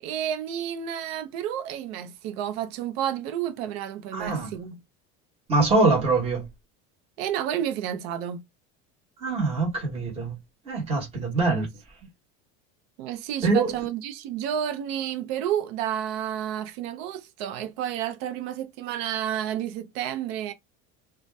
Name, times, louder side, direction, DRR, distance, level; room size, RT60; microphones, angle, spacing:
voice 1, 0.0-4.8 7.2-8.4 11.5-11.7 13.0-20.5, right 10 dB, 85° right, 0.6 m, -30 dB
voice 2, 4.1-4.5 5.5-6.4 9.2-10.4 10.6-11.7 13.4-13.8, right 3 dB, 20° right, 1.1 m, -23 dB
2.5 x 2.2 x 3.2 m
cardioid pair, 180°, 31 cm